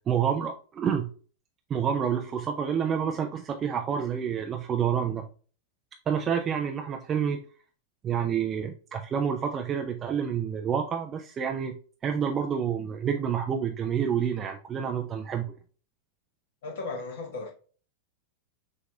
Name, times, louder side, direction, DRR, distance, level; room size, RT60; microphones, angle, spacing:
voice 1, 0.1-1.1 1.7-5.2 6.1-7.4 8.0-11.8 12.0-15.5, right 7 dB, 25° right, 0.4 m, -28 dB
voice 2, 16.6-17.5, left 3 dB, 55° left, 1.3 m, -35 dB
5.8 x 2.9 x 2.2 m
figure-of-eight pair, 90°, 0 cm